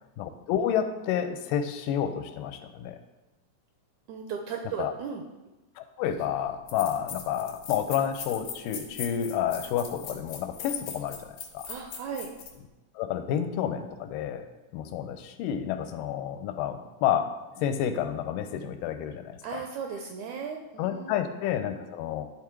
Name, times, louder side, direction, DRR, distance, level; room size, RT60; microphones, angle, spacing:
voice 1, 0.2-3.0 4.8-4.9 5.8-11.7 13.0-14.5 14.7-17.3 17.6-19.6 20.8-22.2, left 9 dB, 85° left, 8 dB, 2.2 m, -30 dB
voice 2, 4.1-5.2 11.7-12.3 19.4-21.2, right 6 dB, 80° right, 3 dB, 1.7 m, -36 dB
sound 1, 6.7-12.5, left 7 dB, 65° left, 1.9 m, -40 dB
11.0 x 3.6 x 4.5 m, 1.1 s
omnidirectional pair, 3.8 m